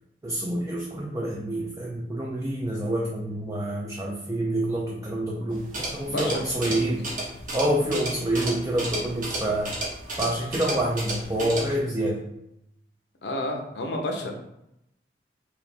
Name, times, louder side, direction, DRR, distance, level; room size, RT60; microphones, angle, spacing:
voice 1, 0.2-7.0 7.5-9.7 10.2-12.3, right 1 dB, 15° right, -2 dB, 0.4 m, -27 dB
sound 1, 5.5-11.8, right 2 dB, 45° right, 1.0 m, -33 dB
voice 2, 6.0-6.8 13.2-14.3, left 1 dB, 75° left, 2 dB, 0.7 m, -31 dB
4.5 x 2.5 x 3.4 m, 0.82 s
head